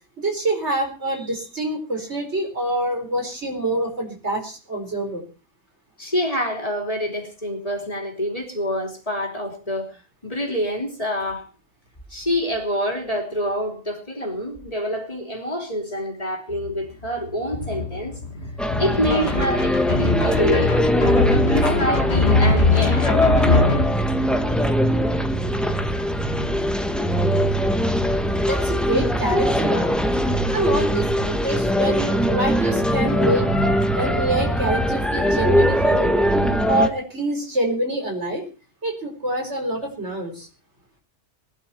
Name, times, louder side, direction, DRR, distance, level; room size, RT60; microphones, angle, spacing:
voice 1, 0.2-5.2 28.5-30.0 30.5-36.1 36.7-38.4 38.8-40.5, right 1 dB, 75° right, 3 dB, 4.9 m, -26 dB
voice 2, 6.0-9.9 10.2-11.5 12.1-18.2 18.8-21.1 21.5-23.1, equal, 30° left, 1 dB, 3.5 m, -26 dB
sound 1, 16.5-16.8 17.0-23.9, left 2 dB, 65° left, 1.9 m, -22 dB
sound 2, 18.6-36.9, equal, ahead, 1.0 m, -21 dB
21.0 x 11.5 x 4.4 m, 0.36 s
omnidirectional pair, 1.2 m